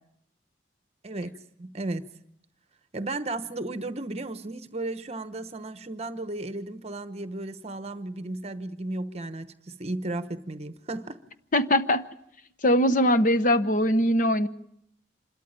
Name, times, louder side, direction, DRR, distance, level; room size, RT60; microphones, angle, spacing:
voice 1, 1.0-1.3 1.6-2.0 2.9-11.2, right 2 dB, 35° right, 11 dB, 1.0 m, -34 dB
voice 2, 11.5-12.1 12.6-14.5, equal, 45° left, 12 dB, 0.9 m, -21 dB
26.5 x 13.0 x 8.9 m, 0.75 s
head